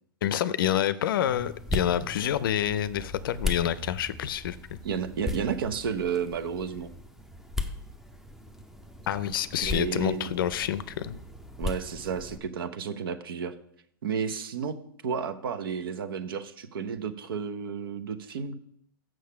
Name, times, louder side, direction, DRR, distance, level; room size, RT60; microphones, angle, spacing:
voice 1, 0.2-4.8 9.1-11.2, left 10 dB, 70° left, 15 dB, 0.5 m, -28 dB
sound 1, 1.2-12.4, left 2 dB, 5° right, 0.6 m, -37 dB
voice 2, 4.8-6.9 9.6-10.3 11.6-13.5 14.0-14.7 15.0-18.6, right 7 dB, 75° right, 11 dB, 0.9 m, -32 dB
6.6 x 6.3 x 5.7 m, 0.72 s
hypercardioid pair, 120°, 12 cm